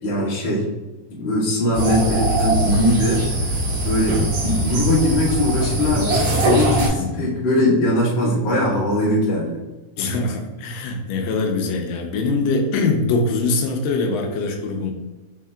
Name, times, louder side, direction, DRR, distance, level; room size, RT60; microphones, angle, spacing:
voice 1, 0.0-0.7 1.1-3.4 3.8-9.6, left 1 dB, 55° left, -8 dB, 0.6 m, -21 dB
sound 1, 1.7-6.9, right 1 dB, 70° right, 3.1 m, -21 dB
voice 2, 7.0-7.4 10.0-14.9, left 3 dB, 85° left, 2 dB, 2.2 m, -23 dB
6.2 x 3.7 x 2.2 m, 1.2 s
omnidirectional pair, 4.0 m